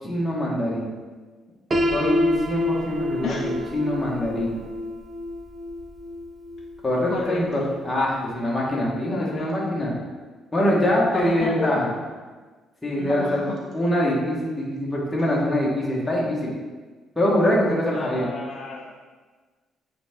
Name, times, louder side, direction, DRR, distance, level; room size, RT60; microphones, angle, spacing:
voice 1, 0.0-0.9 1.9-4.6 6.8-10.0 10.5-11.9 12.8-13.5 13.7-16.5 17.1-18.3, left 1 dB, 10° left, -5 dB, 1.5 m, -24 dB
Piano, 1.7-7.6, left 1 dB, 25° right, 0.6 m, -28 dB
voice 2, 7.1-7.7 9.1-9.8 11.1-12.1 13.0-13.4 17.9-18.8, left 4 dB, 50° left, -1 dB, 0.6 m, -31 dB
8.3 x 3.5 x 3.7 m, 1.4 s
cardioid pair, 150°, 0 cm